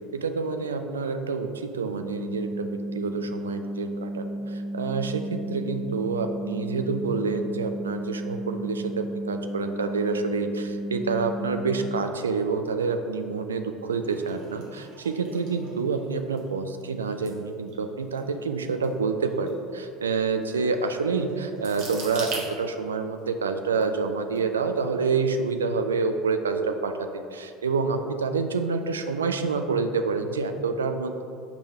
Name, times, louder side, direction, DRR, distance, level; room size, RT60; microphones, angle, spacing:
voice 1, 0.1-2.7 2.9-31.2, right 4 dB, 75° right, 7 dB, 0.3 m, -28 dB
sound 1, 2.0-12.0, right 1 dB, 15° right, 0.5 m, -33 dB
sound 2, 14.0-23.2 23.8-24.4 24.8-25.1, right 3 dB, 55° right, 1.0 m, -42 dB
5.0 x 3.5 x 5.5 m, 2.4 s
figure-of-eight pair, 65°, 0 cm